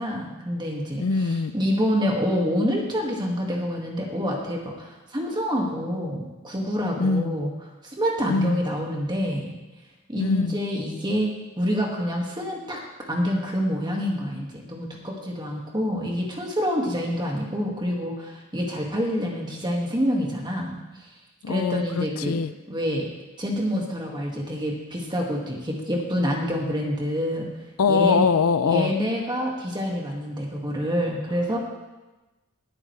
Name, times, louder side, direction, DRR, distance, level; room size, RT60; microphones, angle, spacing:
voice 1, 0.0-7.5 7.8-9.6 10.1-12.8 13.1-21.1 21.5-22.4 22.7-23.1 23.4-27.5 27.9-28.2 28.6-31.6, equal, 20° right, -1 dB, 2.0 m, -27 dB
voice 2, 1.0-1.5 7.0-7.3 8.3-8.6 10.2-10.6 21.4-22.5 27.8-28.9, left 4 dB, 70° left, 13 dB, 0.5 m, -23 dB
19.0 x 9.2 x 3.3 m, 1.1 s
head